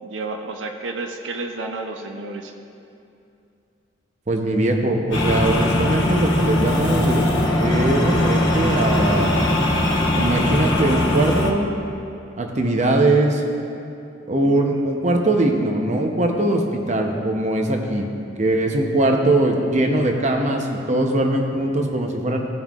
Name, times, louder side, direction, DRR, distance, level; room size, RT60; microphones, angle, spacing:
voice 1, 0.0-2.5 12.6-13.0 14.4-15.3, right 3 dB, 80° right, 4 dB, 0.5 m, -32 dB
voice 2, 4.3-7.3 7.6-9.3 10.1-11.7 12.4-13.4 14.3-18.1 18.4-22.4, right 1 dB, 35° right, 3 dB, 0.7 m, -21 dB
sound 1, 5.1-11.5, left 1 dB, 75° left, 1.2 m, -20 dB
15.5 x 5.5 x 2.4 m, 2.7 s
head